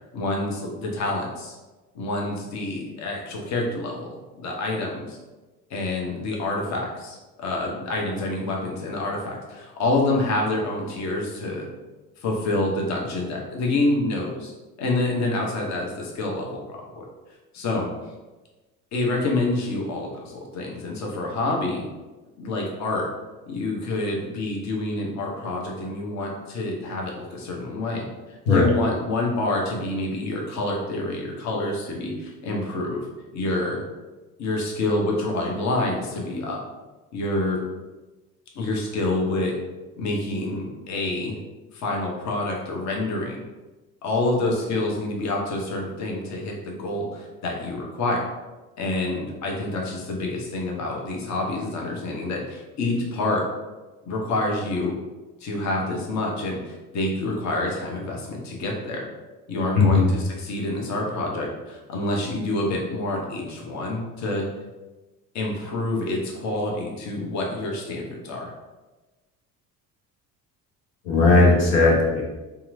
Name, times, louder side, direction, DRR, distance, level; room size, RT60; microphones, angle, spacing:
voice 1, 0.1-1.6 1.9-5.2 5.7-11.7 12.2-14.5 14.8-17.0 17.5-17.8 18.9-21.8 22.4-23.1 23.5-28.0 28.5-33.1 33.3-33.8 34.4-36.6 37.1-37.6 38.5-39.5 40.0-41.4 41.7-43.4 44.0-48.2 48.8-53.5 54.0-55.0 55.4-59.0 59.5-64.5 65.3-68.5, left 2 dB, 35° left, -1 dB, 0.7 m, -27 dB
voice 2, 59.8-60.1 71.1-72.2, left 3 dB, 70° left, -2 dB, 0.7 m, -17 dB
2.8 x 2.4 x 2.6 m, 1.2 s
figure-of-eight pair, 55°, 48 cm